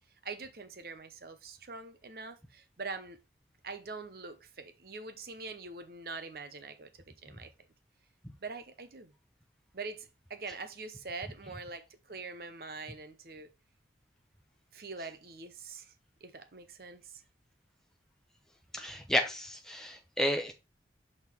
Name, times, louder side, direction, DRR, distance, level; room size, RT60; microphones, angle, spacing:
voice 1, 0.2-3.2 3.6-7.5 8.4-9.1 9.7-13.5 14.7-15.9 16.2-17.2, right 4 dB, 55° right, 0.8 m, -44 dB
voice 2, 18.7-20.5, equal, 5° left, 0.9 m, -31 dB
6.4 x 3.7 x 4.6 m
head